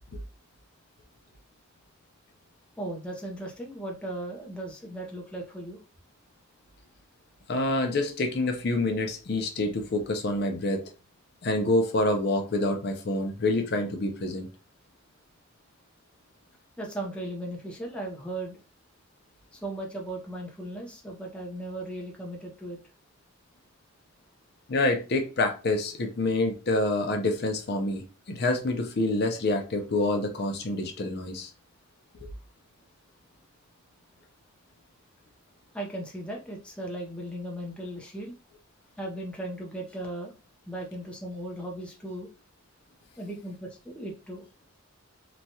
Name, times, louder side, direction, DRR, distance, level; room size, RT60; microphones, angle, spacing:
voice 1, 2.8-5.8 16.8-18.6 19.5-22.8 35.7-38.3 39.0-40.3 40.7-42.3 43.2-44.5, right 1 dB, 5° left, 0.5 m, -37 dB
voice 2, 7.5-10.8 11.4-14.5 24.7-31.5, left 2 dB, 50° left, 0.5 m, -27 dB
3.0 x 2.3 x 2.7 m
head